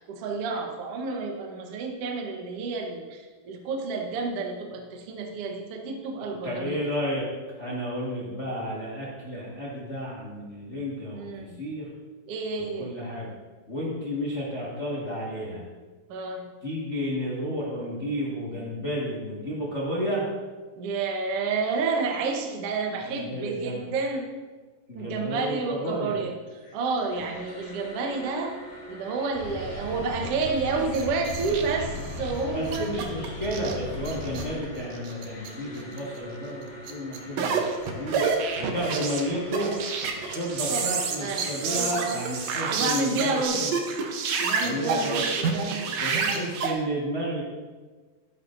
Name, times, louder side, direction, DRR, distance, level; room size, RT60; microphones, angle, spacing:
voice 1, 0.0-6.8 11.1-11.6 12.3-12.9 16.1-16.5 20.8-24.3 24.9-28.5 28.9-32.9 40.7-40.9 41.2-42.2 42.7-43.7 44.4-46.5, right 4 dB, 70° right, 2 dB, 1.4 m, -30 dB
voice 2, 6.4-7.2 7.6-11.9 12.8-13.3 13.7-15.6 16.6-20.3 23.0-23.8 24.9-26.2 32.5-37.6 37.9-38.2 38.6-39.7 40.2-43.7 44.6-45.2 46.0-47.4, equal, 80° left, -7 dB, 0.6 m, -32 dB
sound 1, 26.5-43.5, left 1 dB, 25° left, 2.0 m, -46 dB
sound 2, 29.3-34.6, left 1 dB, 50° left, 2.2 m, -37 dB
sound 3, 30.6-32.4 32.7-34.6 34.9-35.5 35.8-36.0 36.9-46.7, right 5 dB, 90° right, 1.5 m, -29 dB
12.5 x 9.4 x 2.6 m, 1.3 s
omnidirectional pair, 4.3 m